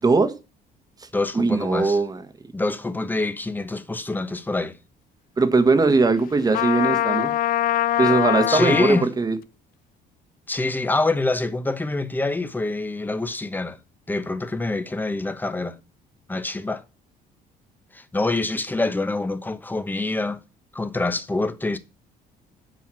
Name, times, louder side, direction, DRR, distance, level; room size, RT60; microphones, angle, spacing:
voice 1, 0.0-0.3 1.3-2.2 5.4-7.3 8.0-9.4, right 3 dB, 20° right, 1.5 m, -20 dB
voice 2, 1.1-2.0 2.5-4.8 8.5-9.1 10.5-13.8 14.1-15.8 16.3-16.8 17.9-20.4 20.7-21.8, left 2 dB, 10° left, 1.0 m, -25 dB
Trumpet, 6.5-9.0, left 13 dB, 55° left, 0.4 m, -23 dB
7.7 x 5.5 x 7.5 m
cardioid pair, 110°, 17 cm